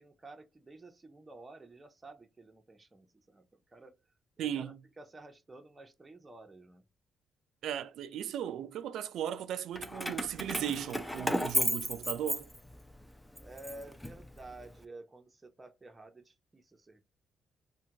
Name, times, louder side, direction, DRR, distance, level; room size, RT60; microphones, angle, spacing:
voice 1, 0.0-4.0 4.4-6.8 13.4-17.0, right 2 dB, 20° right, 0.7 m, -52 dB
voice 2, 4.4-4.8 7.6-12.5, right 10 dB, 80° right, 0.3 m, -36 dB
Keys jangling, 9.8-12.9 13.4-14.6, equal, 5° left, 0.5 m, -34 dB
3.4 x 2.2 x 2.8 m
cardioid pair, 90°, 0 cm